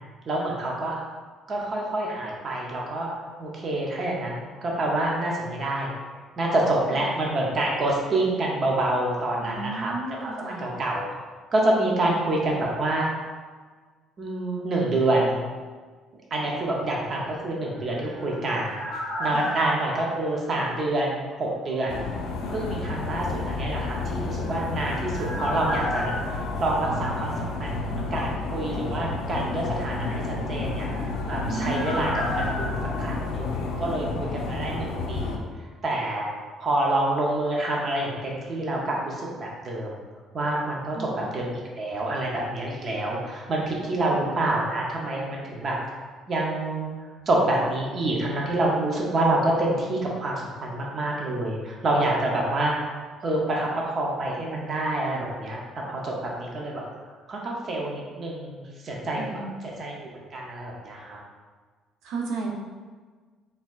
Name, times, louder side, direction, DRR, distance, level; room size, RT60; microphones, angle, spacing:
voice 1, 0.3-1.0 1.5-3.1 3.4-5.9 6.4-11.0 11.5-13.1 14.2-15.4 16.3-22.0 22.5-26.1 26.6-30.9 31.2-35.4 35.8-36.3 36.6-40.0 40.3-41.5 41.8-45.8 46.3-46.9 47.3-52.9 53.2-55.6 55.9-56.8 57.3-59.9 60.3-61.2, right 1 dB, 30° right, -2 dB, 0.6 m, -27 dB
voice 2, 9.4-10.7 19.3-19.4 31.5-31.9 40.9-41.3 43.9-44.1 59.2-59.6 62.0-62.5, right 3 dB, 70° right, 0 dB, 0.6 m, -33 dB
sound 1, 17.6-21.4 21.7-21.8 24.2-27.9 28.2-28.3 30.5-34.4 34.6-34.7, left 1 dB, 20° left, 1.3 m, -35 dB
sound 2, 21.9-35.4, left 3 dB, 80° left, 0.4 m, -31 dB
4.3 x 3.5 x 2.3 m, 1.4 s
cardioid pair, 175°, 0 cm